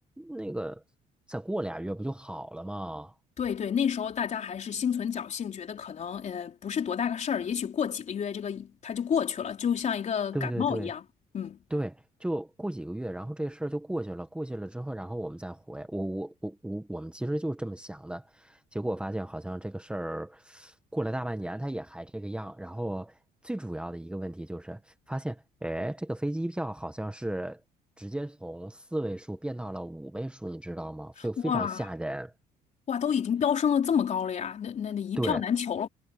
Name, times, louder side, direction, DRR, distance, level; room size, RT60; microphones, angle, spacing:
voice 1, 0.2-0.8 1.3-3.1 10.3-10.9 11.7-23.2 23.4-27.6 28.0-32.3 35.2-35.5, right 1 dB, 5° right, 1.6 m, -34 dB
voice 2, 3.4-11.0 11.3-11.6 31.4-31.9 32.9-35.9, left 8 dB, 45° left, 3.9 m, -29 dB
cardioid pair, 110°, 17 cm